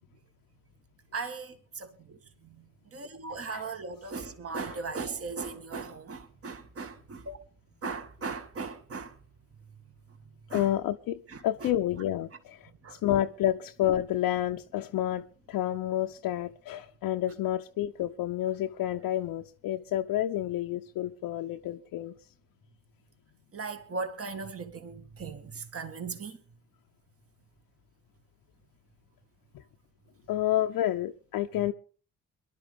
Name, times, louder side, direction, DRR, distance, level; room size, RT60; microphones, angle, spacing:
voice 1, 1.1-7.4 7.8-9.2 10.5-10.7 11.3-11.7 12.8-13.0 23.5-26.4, right 4 dB, 35° right, 2.0 m, -38 dB
voice 2, 10.5-22.1 29.5-29.6 30.3-31.7, left 12 dB, 60° left, 0.8 m, -30 dB
23.5 x 11.5 x 3.6 m
supercardioid pair, 65°, 38 cm